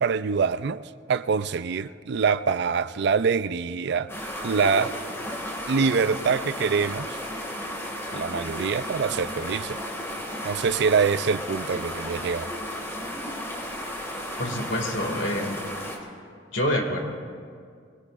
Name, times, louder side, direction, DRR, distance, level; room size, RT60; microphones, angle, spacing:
voice 1, 0.0-0.8 1.1-5.0 5.7-7.2 8.1-9.8 10.4-12.5 14.5-14.6, right 5 dB, 60° right, 0.4 m, -25 dB
sound 1, 4.1-16.0, equal, 15° left, 2.0 m, -34 dB
voice 2, 14.4-15.6 16.5-17.0, left 1 dB, 80° left, 2.2 m, -27 dB
24.0 x 20.5 x 2.5 m
head